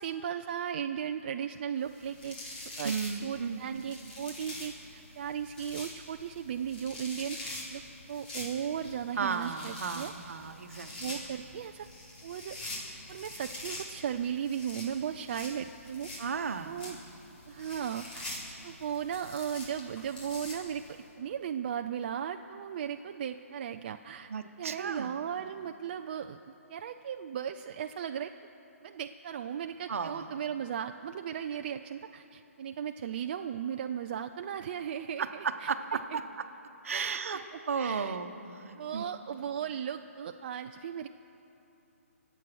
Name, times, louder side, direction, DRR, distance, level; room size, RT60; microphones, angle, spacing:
voice 1, 0.0-2.4 2.8-2.9 3.2-7.8 8.1-10.1 11.0-11.9 12.2-12.6 13.1-16.1 16.6-17.0 17.5-18.3 18.6-24.3 24.6-26.4 26.7-28.3 28.8-35.7 36.1-36.2 36.9-37.4 37.8-38.2 38.8-41.1, right 8 dB, 40° right, 7 dB, 0.4 m, -36 dB
sound 1, 1.8-21.0, left 1 dB, 40° left, 3.9 m, -45 dB
voice 2, 2.8-3.6 9.2-10.9 16.2-16.8 24.3-25.1 29.9-30.3 35.2-36.2 36.8-37.4 37.7-39.1, right 5 dB, 65° right, 8 dB, 1.1 m, -34 dB
25.0 x 8.3 x 6.1 m, 2.9 s
hypercardioid pair, 155°, 8 cm